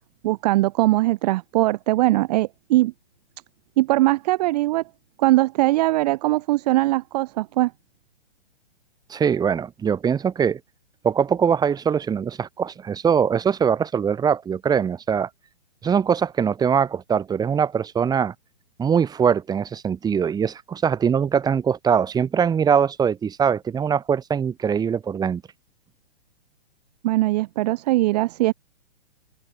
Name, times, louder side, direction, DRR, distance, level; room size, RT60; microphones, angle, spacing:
voice 1, 0.2-2.9 3.8-4.8 5.2-7.7 27.0-28.5, right 18 dB, 35° right, 1.1 m, -20 dB
voice 2, 9.1-10.6 11.0-15.3 15.8-18.3 18.8-25.4, right 7 dB, 10° right, 2.8 m, -22 dB
hypercardioid pair, 145°, 33 cm